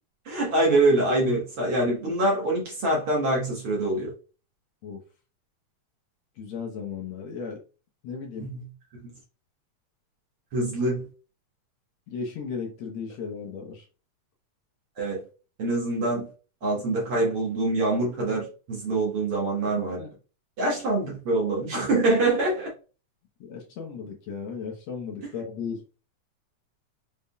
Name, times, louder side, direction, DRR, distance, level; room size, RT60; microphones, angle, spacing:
voice 1, 0.3-4.1 8.4-8.7 10.5-11.1 15.0-15.2 15.6-16.3 16.6-20.0 20.6-22.7, right 2 dB, 55° right, 1.9 m, -25 dB
voice 2, 6.4-7.6 8.0-8.5 12.1-13.9 20.0-20.1 23.4-26.0, left 5 dB, 70° left, 2.0 m, -35 dB
5.3 x 3.5 x 2.3 m
omnidirectional pair, 3.5 m